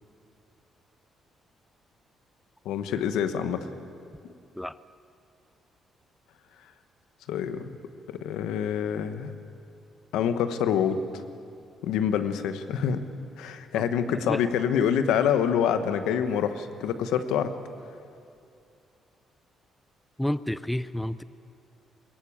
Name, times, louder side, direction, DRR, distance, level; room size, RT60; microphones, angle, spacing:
voice 1, 2.6-3.7 4.2-4.3 7.3-7.7 8.1-9.3 10.1-11.0 11.8-13.0 13.4-17.5, left 8 dB, 90° left, 10 dB, 1.1 m, -26 dB
voice 2, 13.7-14.4 20.2-21.2, left 1 dB, 5° left, 16 dB, 0.5 m, -31 dB
21.5 x 17.5 x 8.7 m, 2.5 s
cardioid pair, 90°, 0 cm